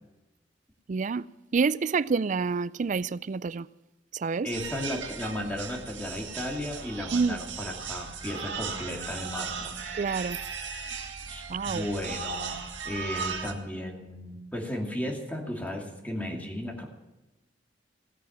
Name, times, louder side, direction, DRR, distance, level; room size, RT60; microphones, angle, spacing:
voice 1, 0.9-1.3 1.5-3.7 4.1-4.5 7.1-7.4 10.0-10.4 11.5-11.9, right 5 dB, 45° right, 0.4 m, -27 dB
voice 2, 4.4-9.8 11.3-16.9, left 1 dB, 10° left, 2.4 m, -35 dB
sound 1, 4.5-13.5, right 5 dB, 85° right, 2.0 m, -37 dB
17.0 x 9.1 x 7.3 m
head